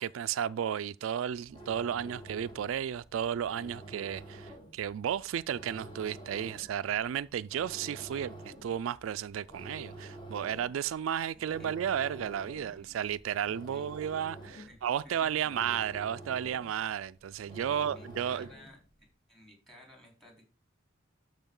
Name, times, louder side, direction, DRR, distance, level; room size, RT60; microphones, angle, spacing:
voice 1, 0.0-8.3 8.6-18.5, right 9 dB, 85° right, 0.3 m, -33 dB
sound 1, 1.5-18.9, right 1 dB, 25° left, 1.9 m, -49 dB
voice 2, 6.5-6.9 8.1-8.3 11.3-11.7 12.5-13.0 13.7-13.9 14.5-14.8 15.0-15.5 17.6-18.8 19.3-20.4, equal, ahead, 3.8 m, -56 dB
12.5 x 5.0 x 3.8 m
head